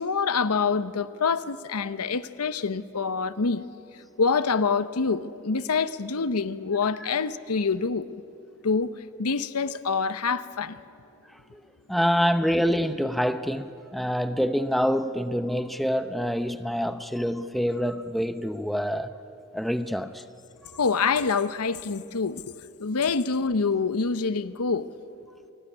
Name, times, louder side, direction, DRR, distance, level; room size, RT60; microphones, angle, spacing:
voice 1, 0.0-3.7 4.2-8.1 8.6-8.9 9.2-10.8 20.8-22.4 22.8-24.9, left 5 dB, 85° left, 0.8 m, -26 dB
voice 2, 11.9-19.1 19.5-20.2, equal, ahead, 0.7 m, -26 dB
27.5 x 18.5 x 9.9 m
head